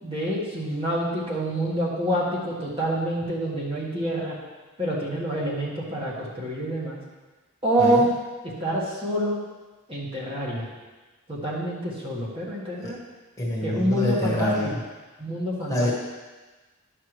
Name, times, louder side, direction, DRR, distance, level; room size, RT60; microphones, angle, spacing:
voice 1, 0.0-4.4 4.8-7.0 7.6-8.1 8.6-9.4 9.9-10.7 11.3-13.0 13.6-14.7 15.2-15.9, right 1 dB, 25° right, -6 dB, 1.6 m, -27 dB
voice 2, 13.4-14.8 15.7-15.9, left 1 dB, 15° left, -5 dB, 1.4 m, -26 dB
11.0 x 5.9 x 3.2 m, 1.3 s
head